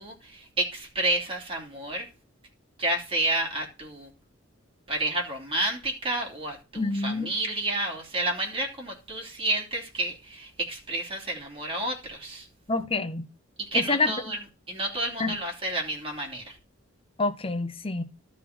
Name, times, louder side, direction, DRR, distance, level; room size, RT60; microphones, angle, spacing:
voice 1, 0.0-2.1 2.8-4.1 4.9-12.5 13.7-14.4 14.7-16.5, right 1 dB, 30° right, 3.2 m, -30 dB
voice 2, 6.8-7.3 12.7-13.2 13.7-14.2 15.2-15.4 17.2-18.0, left 3 dB, 30° left, 0.9 m, -27 dB
12.5 x 4.2 x 6.1 m
head